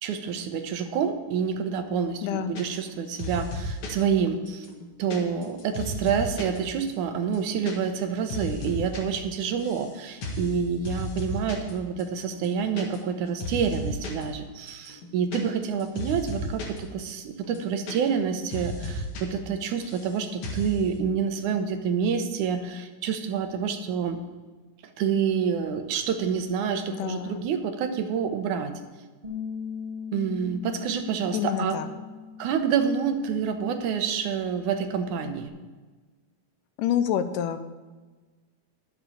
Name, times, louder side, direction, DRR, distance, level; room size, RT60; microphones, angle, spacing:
voice 1, 0.0-4.7 5.0-24.2 25.0-28.7 30.1-31.8 32.4-35.5, right 7 dB, 75° right, 8 dB, 2.3 m, -28 dB
voice 2, 2.2-2.6 26.9-27.4 31.3-31.9 36.8-37.6, left 9 dB, 85° left, 11 dB, 2.3 m, -27 dB
sound 1, 2.6-2.9 3.2-4.0 4.5-6.6 6.9-7.0 7.2-7.7 8.0-9.0 9.3-9.9 10.2-10.5 10.9-11.7 12.0-12.1 12.3-13.2 13.4-14.2 14.7-16.8 17.1-17.2 17.4-18.3 18.5-19.2 19.5-20.1 20.4-20.8, left 1 dB, 60° left, 2.9 m, -34 dB
Bass guitar, 29.2-35.5, left 7 dB, 40° right, 0.6 m, -40 dB
11.0 x 7.2 x 7.1 m, 1.3 s
omnidirectional pair, 3.7 m